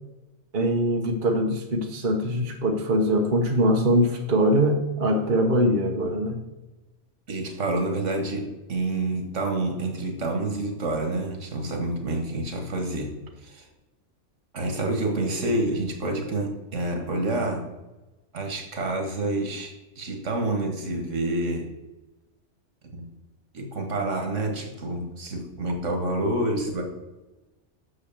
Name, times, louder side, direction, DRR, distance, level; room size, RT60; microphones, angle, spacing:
voice 1, 0.5-6.4, equal, 45° right, 3 dB, 1.2 m, -22 dB
voice 2, 7.3-13.2 13.4-13.7 14.5-17.6 18.3-21.7 22.8-23.1 23.5-26.8, right 2 dB, 85° right, 3 dB, 1.9 m, -28 dB
6.5 x 6.3 x 7.0 m, 1.1 s
omnidirectional pair, 1.2 m